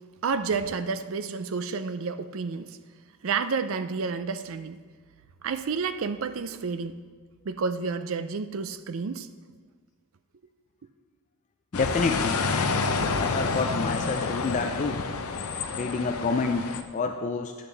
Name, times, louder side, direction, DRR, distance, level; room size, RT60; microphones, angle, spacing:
voice 1, 0.2-2.8 3.2-4.8 5.4-7.0 7.5-9.3, right 5 dB, 65° right, 11 dB, 0.5 m, -30 dB
sound 1, 11.7-16.8, left 4 dB, 80° left, 0.6 m, -28 dB
voice 2, 11.7-12.4 13.2-15.0 15.8-17.5, left 4 dB, 35° left, 5 dB, 0.4 m, -28 dB
10.5 x 7.6 x 3.9 m, 1.5 s
head